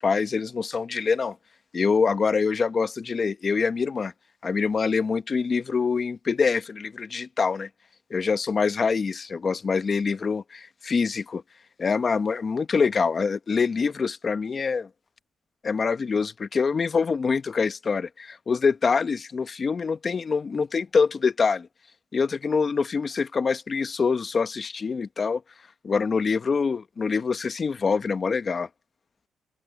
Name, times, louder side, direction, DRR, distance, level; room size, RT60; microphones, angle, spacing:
voice 1, 0.0-1.4 1.7-4.1 4.4-7.7 8.1-11.4 11.8-14.9 15.6-21.7 22.1-25.4 25.8-28.7, left 5 dB, 40° left, 1.2 m, -25 dB
open air
cardioid pair, 90°, 0 cm